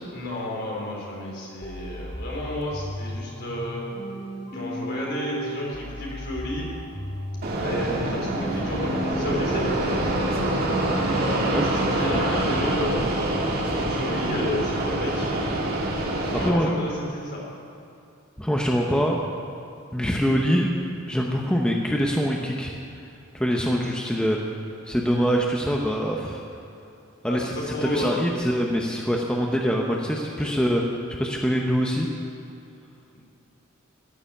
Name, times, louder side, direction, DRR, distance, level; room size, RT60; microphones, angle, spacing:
voice 1, 0.1-3.8 4.5-6.7 7.6-9.9 11.1-13.1 13.5-15.3 15.6-15.8 16.2-17.4 27.3-28.2 30.4-30.5, left 1 dB, 50° left, -3 dB, 3.9 m, -32 dB
sound 1, 1.6-10.2, equal, 30° left, 1.8 m, -35 dB
Fixed-wing aircraft airplane, 7.4-16.5, right 1 dB, 50° right, 2.0 m, -25 dB
voice 2, 16.4-16.9 18.4-19.2 19.9-20.7 21.1-22.7 23.3-24.4 24.9-26.4 27.2-30.8 31.2-32.1, equal, 5° left, -1 dB, 0.8 m, -24 dB
14.5 x 7.0 x 9.9 m, 2.6 s
head